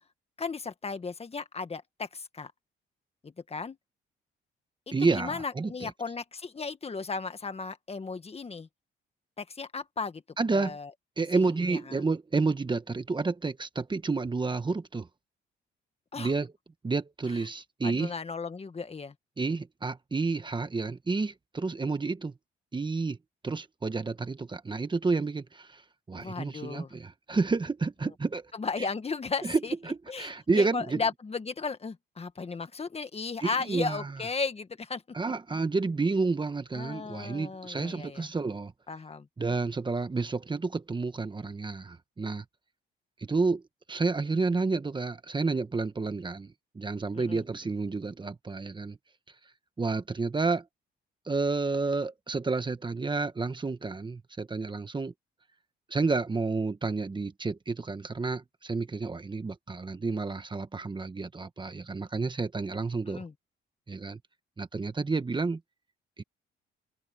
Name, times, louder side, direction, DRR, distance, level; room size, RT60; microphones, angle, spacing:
voice 1, 0.4-2.5 3.2-3.8 4.9-8.7 9.4-10.2 10.5-10.9 11.3-12.0 16.1-16.3 17.8-19.1 26.2-26.9 28.5-29.7 30.1-35.0 36.7-38.3 38.9-39.3 47.1-47.4 63.1-63.3, left 4 dB, 30° left, 1.7 m, -35 dB
voice 2, 4.9-5.9 10.4-10.8 11.2-15.1 16.2-16.5 16.8-18.1 19.4-22.3 22.7-23.2 23.4-25.8 26.1-28.4 29.4-29.6 29.9-31.0 33.4-34.1 35.1-38.7 39.4-42.4 43.2-43.6 43.9-49.0 49.8-50.6 51.3-55.1 55.9-63.2 63.9-64.2 64.6-65.6 66.2-66.3, right 3 dB, 25° right, 1.3 m, -30 dB
open air
cardioid pair, 90°, 20 cm